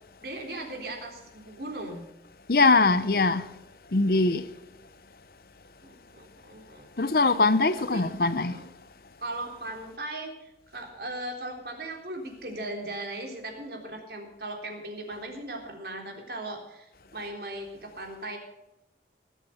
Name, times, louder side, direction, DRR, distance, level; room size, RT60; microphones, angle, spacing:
voice 1, 0.2-2.1 5.8-6.9 7.9-8.0 8.4-8.7 9.2-16.9 17.1-18.4, right 1 dB, 60° right, 3.7 m, -38 dB
voice 2, 2.5-3.5 3.9-4.4 7.0-8.6, left 3 dB, 55° left, 0.8 m, -22 dB
20.0 x 8.3 x 5.8 m
head